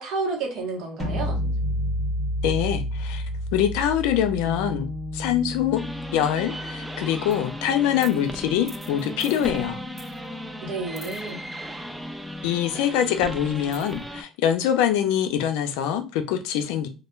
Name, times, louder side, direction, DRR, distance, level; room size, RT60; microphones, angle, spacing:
voice 1, 0.0-1.4 10.6-11.4, right 3 dB, 65° right, 1 dB, 0.9 m, -30 dB
sound 1, 1.0-7.0, equal, 20° left, 0.8 m, -30 dB
voice 2, 2.4-3.2 3.5-5.8 6.1-9.8 12.4-16.9, left 10 dB, 90° left, 7 dB, 0.4 m, -24 dB
sound 2, 4.4-14.1, left 2 dB, 35° right, 1.0 m, -40 dB
sound 3, 5.8-14.2, equal, 5° right, 0.3 m, -36 dB
2.2 x 2.1 x 3.0 m, 0.31 s
cardioid pair, 120°, 0 cm